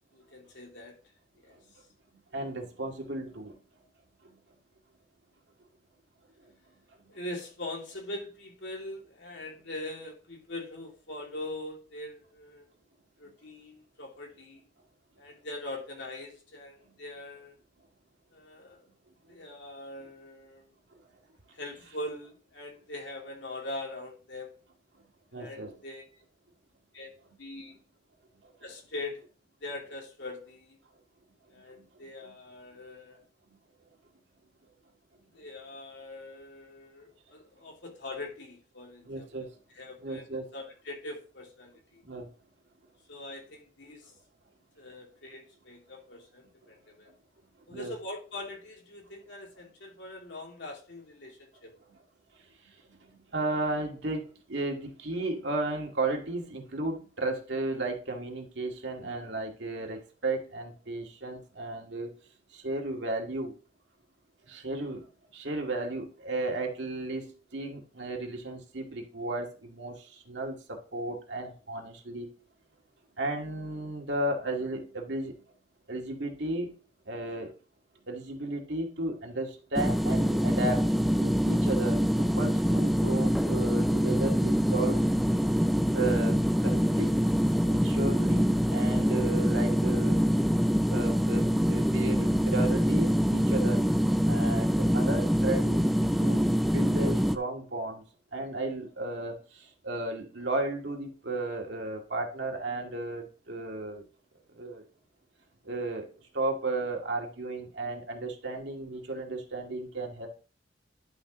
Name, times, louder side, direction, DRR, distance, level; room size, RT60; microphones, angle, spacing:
voice 1, 0.1-1.0 1.4-1.5 7.1-12.7 13.2-14.6 15.2-17.5 18.3-18.9 19.3-20.7 21.5-24.5 25.3-26.0 26.9-27.1 27.4-27.8 28.6-29.2 29.6-30.8 31.5-33.2 35.3-39.3 39.7-42.0 43.1-44.1 44.8-47.1 47.7-51.7, left 2 dB, 75° left, 2.7 m, -42 dB
voice 2, 2.3-3.6 4.2-4.4 7.0-7.1 25.3-25.7 28.4-28.5 31.8-32.3 39.0-39.5 40.0-40.5 42.0-42.3 47.7-47.9 52.6-62.1 62.5-63.5 64.4-72.3 73.2-75.4 75.9-76.7 77.1-77.5 78.1-80.9 81.2-82.1 82.4-85.1 85.9-87.1 87.6-90.2 90.9-93.8 94.2-98.0 98.3-104.1 104.5-104.8 105.6-110.3, right 2 dB, 70° right, 2.1 m, -34 dB
sound 1, 79.7-97.4, equal, ahead, 0.3 m, -25 dB
11.0 x 6.3 x 3.1 m
head